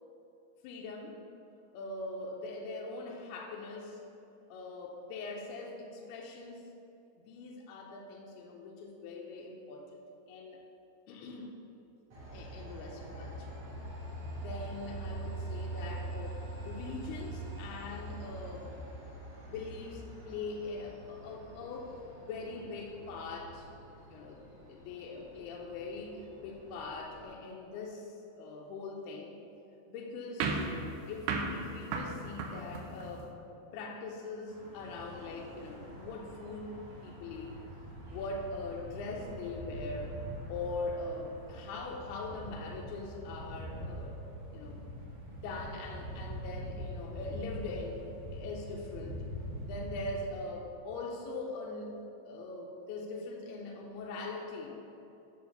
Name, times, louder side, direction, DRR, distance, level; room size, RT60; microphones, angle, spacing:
voice 1, 0.6-1.2 1.7-4.0 4.5-6.6 7.3-10.0 10.3-10.6 11.1-11.6 12.3-13.7 14.4-18.7 19.3-22.0 22.3-23.7 24.1-29.4 29.9-30.6 31.1-33.3 33.7-36.7 37.0-37.6 38.1-40.2 40.5-44.2 44.5-44.8 45.4-48.0 48.3-49.2 49.7-52.0 52.3-54.8, left 3 dB, 80° left, -1 dB, 2.6 m, -42 dB
Train, 12.1-27.2, right 2 dB, 45° right, 2.2 m, -44 dB
sound 1, 30.4-33.3, right 3 dB, 80° right, 2.5 m, -35 dB
sound 2, 34.5-50.1, equal, 60° right, 3.2 m, -44 dB
9.3 x 4.3 x 6.5 m, 2.8 s
omnidirectional pair, 4.9 m